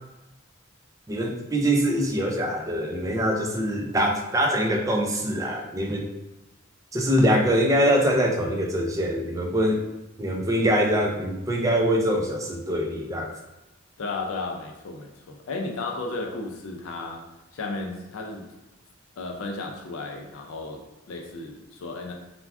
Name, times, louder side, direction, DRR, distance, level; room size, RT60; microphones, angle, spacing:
voice 1, 1.1-6.0 6.9-9.8 10.2-13.3, equal, 15° right, 1 dB, 0.3 m, -23 dB
voice 2, 14.0-17.3 17.5-18.5 19.2-22.1, left 3 dB, 80° left, 1 dB, 0.4 m, -34 dB
2.3 x 2.1 x 3.4 m, 1.0 s
head